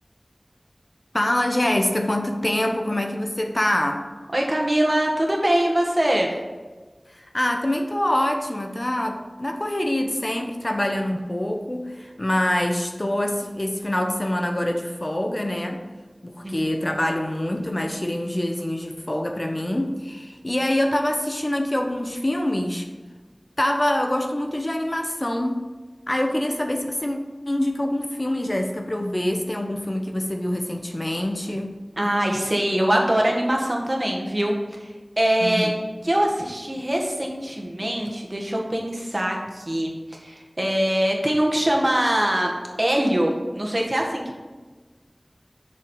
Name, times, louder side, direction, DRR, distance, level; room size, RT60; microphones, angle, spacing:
voice 1, 1.1-4.0 7.1-15.8 16.2-22.9 23.6-25.6 26.1-27.2 27.5-31.7 35.4-35.7, left 1 dB, 45° left, 4 dB, 1.0 m, -25 dB
voice 2, 4.3-6.3 16.4-16.9 32.0-34.9 35.2-35.7 36.0-42.5 42.8-44.4, right 1 dB, 45° right, 0 dB, 1.8 m, -23 dB
7.4 x 6.4 x 5.7 m, 1.3 s
wide cardioid pair, 45°, 0 cm